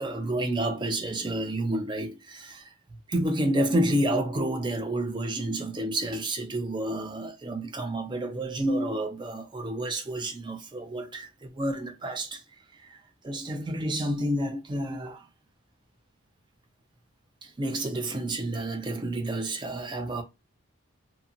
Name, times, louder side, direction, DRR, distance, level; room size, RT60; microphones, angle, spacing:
voice 1, 0.0-2.7 3.1-12.4 12.8-13.0 13.2-15.2 17.4-20.2, right 1 dB, 20° right, 0.4 m, -30 dB
2.7 x 2.3 x 2.7 m
head